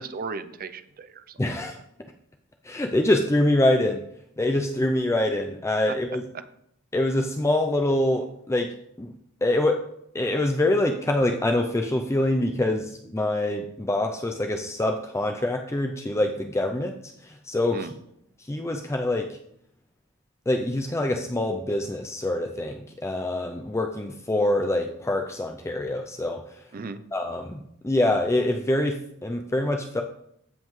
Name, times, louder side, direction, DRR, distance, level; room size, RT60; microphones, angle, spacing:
voice 1, 0.0-1.4 5.9-6.0 17.7-17.9 26.7-27.0, right 4 dB, 40° right, 12 dB, 0.5 m, -36 dB
voice 2, 1.4-1.8 2.7-4.0 4.4-6.2 6.9-8.7 9.0-9.1 9.4-9.8 10.1-17.8 18.5-19.3 20.5-26.4 27.1-30.0, left 1 dB, 15° left, 3 dB, 0.4 m, -25 dB
14.5 x 5.4 x 3.1 m, 0.75 s
head